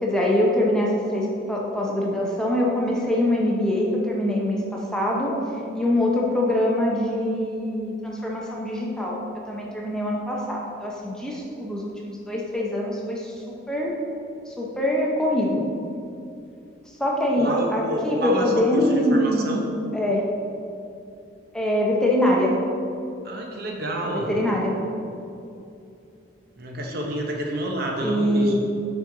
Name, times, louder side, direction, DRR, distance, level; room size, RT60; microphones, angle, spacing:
voice 1, 0.0-5.3 5.7-9.2 9.5-13.3 13.7-13.9 14.5-15.7 17.0-19.5 19.9-20.3 21.5-22.6 24.0-24.8 28.0-28.5, left 1 dB, 5° left, -3 dB, 0.6 m, -24 dB
voice 2, 17.4-19.6 23.2-24.3 26.6-28.5, right 1 dB, 50° right, 0 dB, 0.8 m, -28 dB
6.3 x 5.2 x 3.8 m, 2.6 s
head